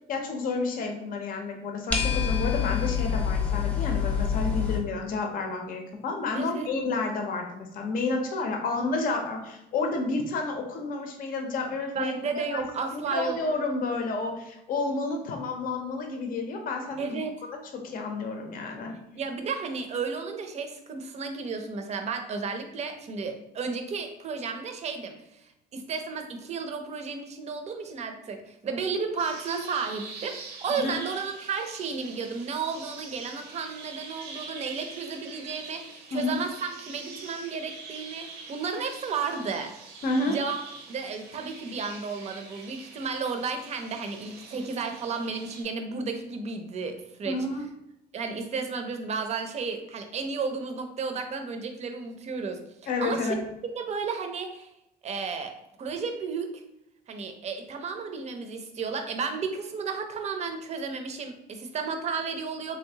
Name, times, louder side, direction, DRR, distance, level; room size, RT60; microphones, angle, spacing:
voice 1, 0.1-12.1 12.5-12.6 12.9-17.2 17.7-18.9 30.7-30.9 36.1-36.4 40.0-40.4 47.3-47.6 52.9-53.4, left 3 dB, 55° left, 3 dB, 0.6 m, -30 dB
sound 1, 1.9-4.8, left 7 dB, 10° left, 0.7 m, -26 dB
voice 2, 6.3-6.7 11.9-13.4 17.0-17.3 19.1-25.4 25.7-39.7 40.3-40.6 40.9-47.4 48.1-53.4 53.7-54.7 55.0-55.5 55.8-56.5 57.1-62.8, right 5 dB, 40° right, 6 dB, 0.5 m, -33 dB
sound 2, 29.2-45.6, right 4 dB, 90° right, 0.7 m, -44 dB
3.2 x 2.7 x 2.8 m, 0.85 s
cardioid pair, 110°, 17 cm